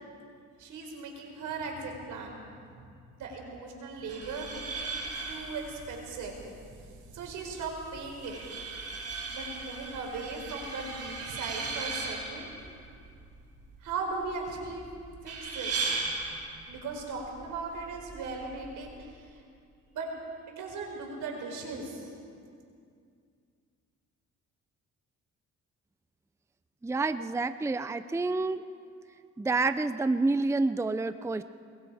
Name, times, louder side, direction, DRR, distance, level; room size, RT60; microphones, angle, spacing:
voice 1, 0.6-2.4 3.2-5.0 5.3-6.4 7.1-8.4 9.3-12.5 13.8-14.9 15.2-16.0 16.7-19.4 19.9-20.1 20.5-22.1, right 4 dB, 80° right, 1 dB, 5.0 m, -38 dB
sound 1, 4.0-19.0, right 3 dB, 55° right, 5.7 m, -38 dB
voice 2, 26.8-28.6 29.4-31.4, right 3 dB, 10° right, 12 dB, 0.5 m, -28 dB
24.0 x 21.5 x 5.0 m, 2.3 s
cardioid pair, 90°, 30 cm